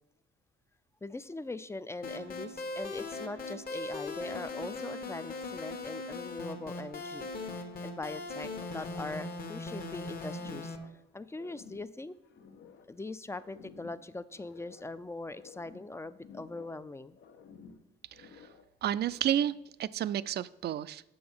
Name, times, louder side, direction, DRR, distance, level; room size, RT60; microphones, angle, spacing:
voice 1, 1.0-12.1 12.9-17.2, left 2 dB, 15° left, 14 dB, 0.4 m, -42 dB
sound 1, 2.0-10.8, left 3 dB, 45° left, 1.2 m, -39 dB
sound 2, 10.3-11.0 11.3-13.0 13.3-15.0 15.3-16.9 17.2-18.7 19.0-19.7, left 6 dB, 70° left, 0.8 m, -54 dB
voice 2, 18.8-21.0, right 11 dB, 55° right, 17 dB, 0.4 m, -31 dB
7.8 x 6.0 x 5.5 m, 0.84 s
cardioid pair, 90°, 20 cm